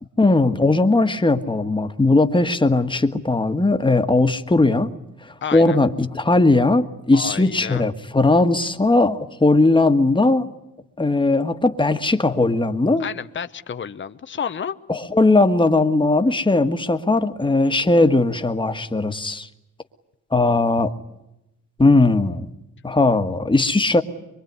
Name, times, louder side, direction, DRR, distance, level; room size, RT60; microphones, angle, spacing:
voice 1, 0.2-4.9 5.2-10.5 11.0-13.0 14.9-19.5 20.3-20.9 21.8-22.5 22.8-24.0, left 2 dB, 15° left, 8 dB, 1.7 m, -18 dB
voice 2, 5.4-5.8 7.1-7.9 13.0-14.7, left 7 dB, 35° left, 10 dB, 0.9 m, -30 dB
24.5 x 23.5 x 9.6 m, 0.92 s
cardioid pair, 110°, 33 cm